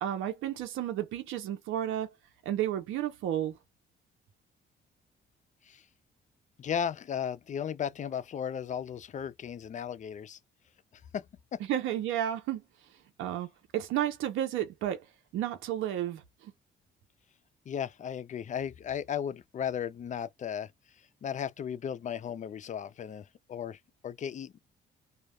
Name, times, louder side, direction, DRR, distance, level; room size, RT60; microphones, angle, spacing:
voice 1, 0.0-2.1 2.4-3.6 11.7-12.6 13.2-13.5 13.7-15.1 15.3-16.5, right 11 dB, 90° right, 0.6 m, -32 dB
voice 2, 6.6-10.4 11.1-11.3 11.5-11.6 17.7-20.7 21.2-24.6, left 8 dB, 40° left, 0.4 m, -35 dB
2.3 x 2.1 x 2.9 m
cardioid pair, 90°, 20 cm